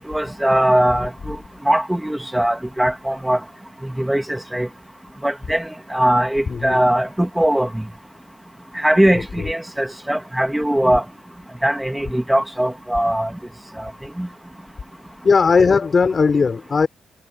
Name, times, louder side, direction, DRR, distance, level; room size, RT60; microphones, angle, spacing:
voice 1, 0.1-1.4 1.7-3.4 3.8-4.7 5.2-7.9 8.8-11.0 11.6-13.3 14.2-14.3, right 1 dB, 5° right, 2.4 m, -20 dB
voice 2, 6.5-6.8 9.1-9.5 15.2-16.9, left 5 dB, 35° left, 4.5 m, -17 dB
cardioid pair, 90°, 0 cm